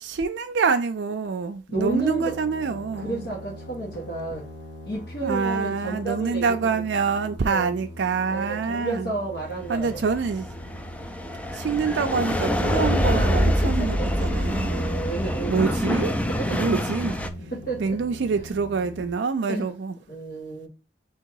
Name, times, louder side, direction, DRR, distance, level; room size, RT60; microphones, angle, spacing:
voice 1, 0.0-3.3 5.2-9.1 9.7-10.5 11.5-15.0 15.5-16.2 16.5-17.5 17.8-20.0, right 5 dB, 80° right, 0.4 m, -26 dB
sound 1, 1.7-19.1, equal, 90° left, 1.7 m, -40 dB
voice 2, 1.7-2.3 2.7-4.5 4.8-6.8 7.4-7.7 8.3-10.0 13.1-15.7 16.2-16.7 17.5-18.0 19.5-19.7 20.1-20.7, right 2 dB, 65° left, 1.5 m, -32 dB
sound 2, 9.7-17.3, equal, 10° left, 0.4 m, -25 dB
3.6 x 2.9 x 4.6 m
head